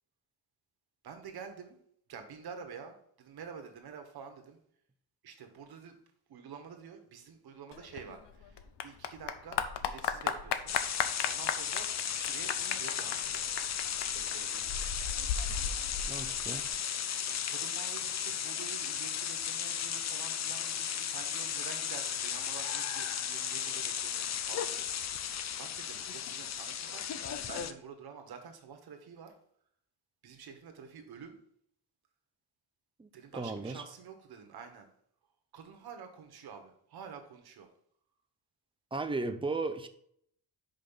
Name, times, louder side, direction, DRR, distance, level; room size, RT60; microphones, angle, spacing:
voice 1, 1.0-1.8 2.1-4.6 5.2-6.0 6.3-10.8 11.2-13.5 14.1-14.9 17.5-24.9 25.6-27.0 27.5-29.3 30.2-31.3 33.1-34.9 35.5-37.7, right 6 dB, 65° right, 1.4 m, -48 dB
Clapping / Applause, 7.7-16.7, left 8 dB, 75° left, 0.8 m, -36 dB
sound 1, 10.7-27.7, left 9 dB, 40° left, 0.5 m, -35 dB
voice 2, 16.1-16.6 33.0-33.8 38.9-39.9, right 3 dB, 15° right, 0.5 m, -35 dB
5.4 x 5.3 x 5.6 m
wide cardioid pair, 150°, 41 cm